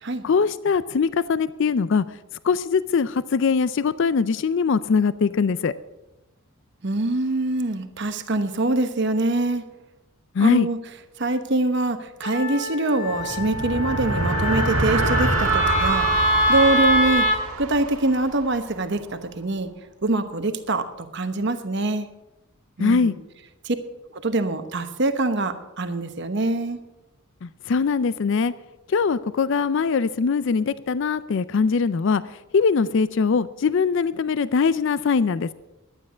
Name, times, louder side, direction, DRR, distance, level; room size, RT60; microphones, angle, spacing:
voice 1, 0.2-2.2 2.4-5.7 10.3-10.7 22.8-23.2 27.4-28.5 28.9-32.2 32.5-35.5, left 5 dB, 55° left, 16 dB, 0.4 m, -22 dB
voice 2, 6.8-9.6 10.4-10.8 11.2-16.1 16.5-19.7 20.0-22.1 22.8-23.1 23.6-23.8 24.1-26.8, right 2 dB, 55° right, 8 dB, 1.0 m, -24 dB
Wind instrument woodwind instrument, 12.2-17.4, equal, 40° left, 1.6 m, -24 dB
sound 1, 13.1-18.8, right 3 dB, 90° right, 1.5 m, -26 dB
12.0 x 9.8 x 6.2 m, 0.97 s
head